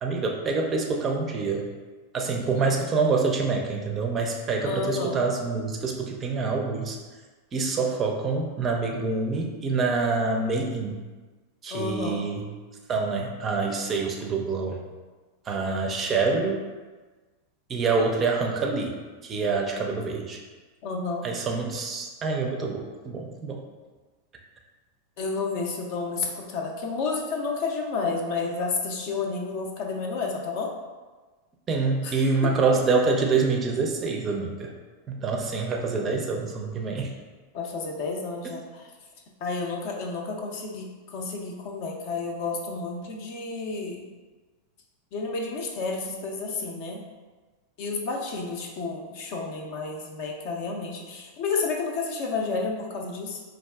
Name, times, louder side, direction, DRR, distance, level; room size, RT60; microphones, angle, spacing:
voice 1, 0.0-1.7 2.1-7.0 7.5-11.0 11.6-12.4 12.9-14.8 15.5-16.5 17.7-19.0 19.2-20.4 21.2-23.6 31.7-34.7 35.1-37.1, right 4 dB, 25° right, 1 dB, 0.4 m, -26 dB
voice 2, 4.6-5.2 11.7-12.3 20.8-21.3 25.2-30.7 32.0-32.5 37.5-38.9 39.4-44.1 45.1-47.0 47.8-53.4, left 4 dB, 45° left, 1 dB, 0.5 m, -31 dB
4.6 x 2.4 x 2.2 m, 1.3 s
figure-of-eight pair, 90°, 0 cm